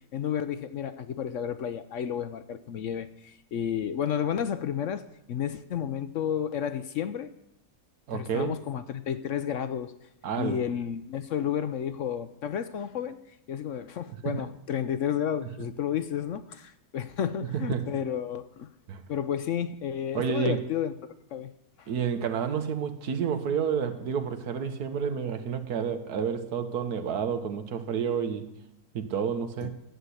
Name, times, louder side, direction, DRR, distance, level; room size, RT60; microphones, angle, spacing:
voice 1, 0.1-5.0 5.3-7.3 8.1-9.9 10.4-13.2 13.5-18.7 19.1-20.9 21.3-21.5 21.8-21.9 29.6-29.7, left 9 dB, 65° left, 12 dB, 0.8 m, -31 dB
voice 2, 8.1-8.5 10.2-10.6 14.2-14.4 17.7-17.8 18.9-19.0 20.1-20.6 21.9-28.5 28.9-29.8, right 7 dB, 80° right, 9 dB, 1.6 m, -30 dB
12.0 x 8.0 x 8.3 m, 0.82 s
omnidirectional pair, 1.7 m